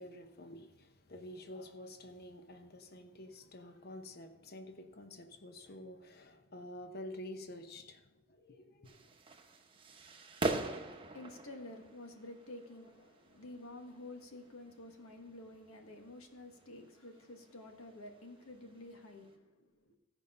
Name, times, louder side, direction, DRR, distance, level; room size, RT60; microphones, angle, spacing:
voice 1, 0.0-9.1, left 1 dB, 45° left, 0.9 m, -49 dB
sound 1, 8.9-19.4, right 2 dB, 25° right, 0.9 m, -44 dB
voice 2, 10.8-20.0, left 2 dB, 80° left, 1.4 m, -50 dB
15.5 x 5.3 x 5.5 m
head